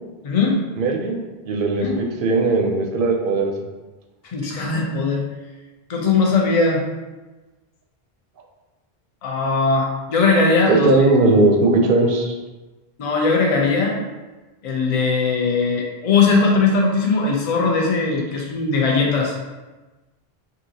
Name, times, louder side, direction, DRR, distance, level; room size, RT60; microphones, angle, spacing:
voice 1, 0.2-0.6 1.8-2.0 4.3-5.2 5.9-6.8 9.2-11.1 13.0-13.9 14.6-19.3, left 4 dB, 45° left, -1 dB, 0.5 m, -19 dB
voice 2, 0.8-1.2 1.5-3.5 4.4-4.5 10.7-12.3, right 2 dB, 65° right, 1 dB, 0.7 m, -18 dB
3.7 x 2.7 x 2.7 m, 1.2 s
omnidirectional pair, 1.0 m